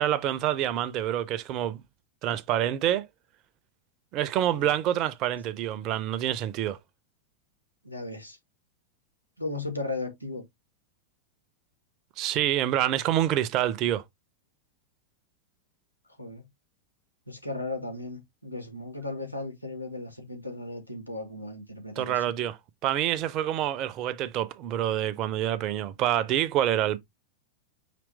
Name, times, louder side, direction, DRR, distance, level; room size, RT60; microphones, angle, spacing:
voice 1, 0.0-1.8 2.2-3.1 4.1-6.8 12.2-14.0 22.0-22.6 22.8-27.0, right 12 dB, 40° right, 0.4 m, -27 dB
voice 2, 7.8-8.4 9.4-10.4 16.2-16.4 17.3-22.2, left 2 dB, 90° left, 1.3 m, -36 dB
5.0 x 2.9 x 3.3 m
figure-of-eight pair, 90°, 0 cm